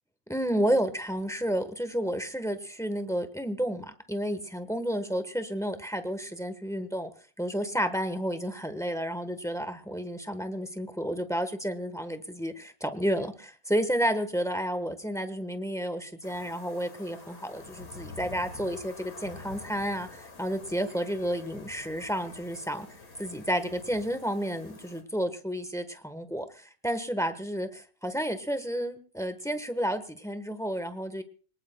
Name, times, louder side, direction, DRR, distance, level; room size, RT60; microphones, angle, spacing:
voice 1, 0.3-7.1 7.4-22.9 23.2-31.2, equal, 5° left, 9 dB, 0.7 m, -31 dB
sound 1, 16.2-25.0, left 3 dB, 60° left, 2.7 m, -48 dB
26.0 x 19.0 x 2.2 m, 0.40 s
omnidirectional pair, 2.0 m